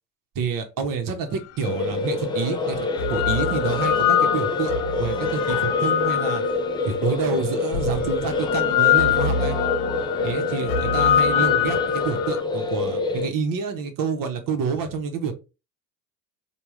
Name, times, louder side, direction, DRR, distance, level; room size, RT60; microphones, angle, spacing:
voice 1, 0.3-2.8 3.1-4.7 5.0-6.4 6.8-9.6 10.2-15.3, right 5 dB, 45° right, 7 dB, 0.8 m, -28 dB
sound 1, 1.6-13.3, left 3 dB, 10° left, 0.3 m, -26 dB
sound 2, 1.7-1.8 2.7-7.0 7.7-12.4, left 9 dB, 65° left, 0.6 m, -24 dB
3.4 x 2.3 x 3.1 m, 0.29 s
hypercardioid pair, 75°, 48 cm